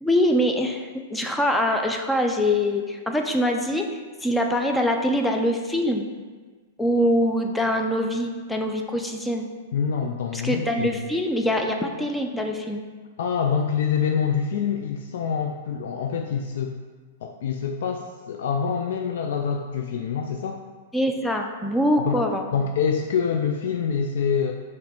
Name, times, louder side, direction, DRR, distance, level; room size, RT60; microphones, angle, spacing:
voice 1, 0.0-6.1 6.8-9.5 10.3-12.8 20.9-22.5, left 1 dB, 5° left, 3 dB, 0.4 m, -24 dB
voice 2, 9.7-11.0 13.2-16.7 17.2-20.6 22.1-22.2 22.5-24.5, left 6 dB, 70° left, 3 dB, 0.3 m, -26 dB
4.7 x 3.1 x 3.5 m, 1.4 s
hypercardioid pair, 120°, 0 cm